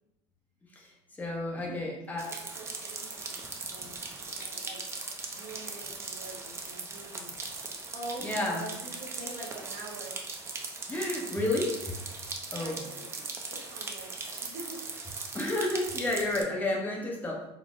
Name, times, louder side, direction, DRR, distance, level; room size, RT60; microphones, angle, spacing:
voice 1, 0.8-2.3 8.2-8.7 10.9-11.9 12.5-12.8 15.3-17.5, left 2 dB, 15° left, -1 dB, 0.7 m, -31 dB
voice 2, 1.5-7.4 7.9-10.2 12.5-14.1 14.4-15.3 16.4-16.6, right 2 dB, 85° right, -6 dB, 0.8 m, -46 dB
sound 1, 2.2-16.4, right 3 dB, 20° right, 0.5 m, -39 dB
3.8 x 2.0 x 3.6 m, 0.91 s
cardioid pair, 125°, 13 cm